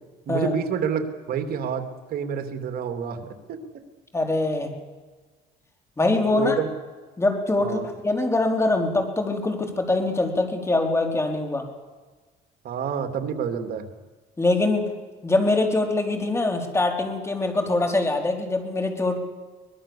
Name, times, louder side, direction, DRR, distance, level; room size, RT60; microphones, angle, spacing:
voice 1, 0.3-3.6 6.2-6.7 7.6-7.9 12.6-13.9, right 7 dB, 60° right, 7 dB, 2.7 m, -28 dB
voice 2, 4.1-4.7 6.0-6.6 7.2-7.8 8.0-11.7 14.4-14.9 15.2-19.2, left 2 dB, 15° left, 3 dB, 3.9 m, -23 dB
23.5 x 20.5 x 7.2 m, 1.3 s
cardioid pair, 110°, 17 cm